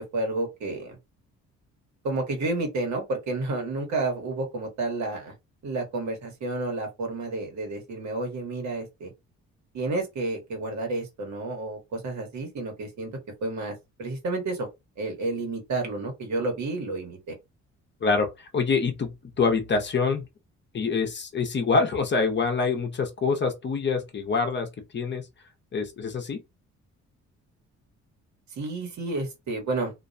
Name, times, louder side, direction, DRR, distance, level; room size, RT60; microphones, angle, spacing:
voice 1, 0.1-1.0 2.0-5.3 5.6-9.1 9.7-13.1 13.4-14.7 15.0-17.3 28.5-29.9, right 2 dB, 70° right, 1.3 m, -30 dB
voice 2, 18.0-20.2 20.7-25.3 25.7-26.4, left 4 dB, 35° left, 0.7 m, -26 dB
2.5 x 2.2 x 2.6 m
cardioid pair, 90°, 30 cm